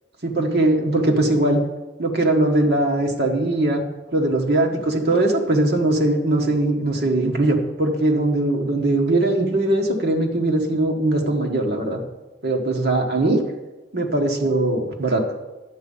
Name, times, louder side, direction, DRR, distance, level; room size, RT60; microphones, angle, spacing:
voice 1, 0.2-1.6 2.0-3.8 4.1-12.0 12.4-13.4 13.9-15.2, right 2 dB, 60° right, 1 dB, 1.5 m, -20 dB
10.5 x 7.5 x 5.5 m, 1.1 s
head